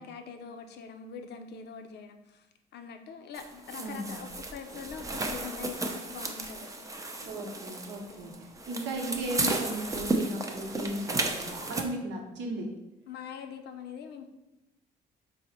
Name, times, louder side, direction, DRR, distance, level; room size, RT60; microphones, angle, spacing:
voice 1, 0.0-2.5 2.7-6.8 8.1-8.4 10.9-11.1 13.1-14.3, left 6 dB, 65° left, 6 dB, 0.5 m, -43 dB
sound 1, 3.3-11.8, right 2 dB, 20° right, 0.5 m, -34 dB
voice 2, 3.8-4.2 7.2-12.7, right 1 dB, 80° right, 0 dB, 0.8 m, -36 dB
3.9 x 2.1 x 4.2 m, 0.92 s
supercardioid pair, 75°, 19 cm